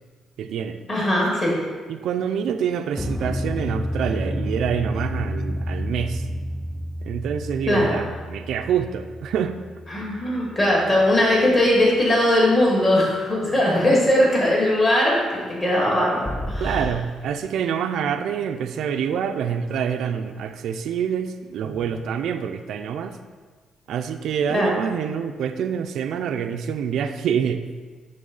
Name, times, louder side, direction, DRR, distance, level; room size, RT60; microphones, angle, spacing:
voice 1, 0.4-0.8 1.9-6.3 7.0-9.6 10.2-10.3 16.6-23.2 23.9-27.7, right 8 dB, 65° right, 7 dB, 0.4 m, -26 dB
voice 2, 0.9-1.5 7.7-8.0 9.9-16.8 24.5-24.7, left 1 dB, 25° left, -3 dB, 1.7 m, -20 dB
sound 1, 3.0-11.3 16.3-16.9, equal, 10° left, 0.3 m, -30 dB
10.5 x 3.5 x 3.9 m, 1.5 s
cardioid pair, 170°, 0 cm